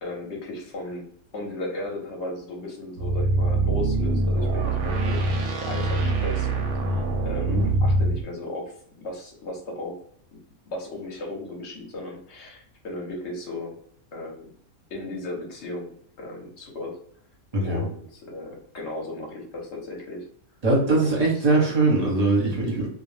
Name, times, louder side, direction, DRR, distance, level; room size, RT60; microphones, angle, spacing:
voice 1, 0.0-10.0 10.7-13.8 14.1-14.5 14.9-17.0 17.6-20.3 20.9-21.8, left 2 dB, 60° left, 0 dB, 0.8 m, -36 dB
sound 1, 3.0-8.2, right 2 dB, 65° right, 0.8 m, -24 dB
voice 2, 17.5-17.8 20.6-22.9, right 2 dB, 35° right, -3 dB, 0.7 m, -21 dB
2.4 x 2.0 x 3.1 m, 0.63 s
omnidirectional pair, 1.6 m